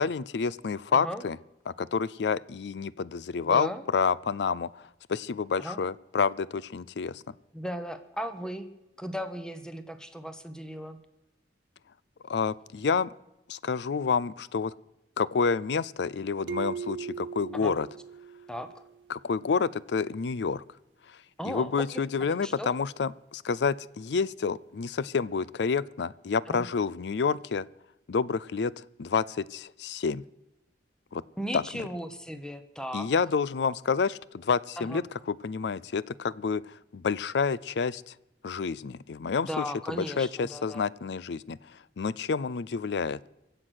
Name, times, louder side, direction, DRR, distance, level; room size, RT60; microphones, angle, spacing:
voice 1, 0.0-1.4 1.7-7.3 12.2-13.1 13.5-14.7 15.2-17.9 19.1-20.6 21.5-27.6 28.1-30.2 31.1-31.2 31.5-31.9 32.9-35.0 35.3-38.1 38.4-43.2, left 5 dB, 70° left, 20 dB, 0.4 m, -29 dB
voice 2, 0.9-1.2 3.4-3.8 5.6-5.8 7.5-8.7 9.0-11.0 17.5-17.7 18.5-18.7 21.4-22.1 22.4-22.7 26.5-26.6 31.4-33.1 34.8-35.0 39.4-40.9, equal, 5° left, 10 dB, 1.0 m, -36 dB
sound 1, 16.5-19.0, right 6 dB, 85° right, 0.5 m, -38 dB
23.0 x 7.8 x 6.4 m, 0.92 s
head